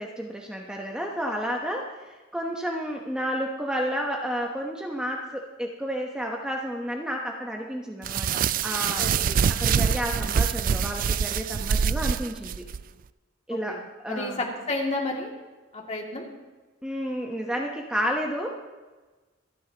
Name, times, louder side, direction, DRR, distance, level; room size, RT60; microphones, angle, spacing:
voice 1, 0.0-9.1 9.5-12.6 13.5-14.5 16.8-18.6, equal, 5° right, 0 dB, 1.0 m, -31 dB
sound 1, 8.0-12.8, right 7 dB, 45° right, 0.3 m, -25 dB
voice 2, 9.0-9.4 13.5-13.8 14.1-15.3 15.7-16.3, left 2 dB, 35° left, -1 dB, 2.4 m, -31 dB
26.0 x 10.0 x 2.9 m, 1.2 s
head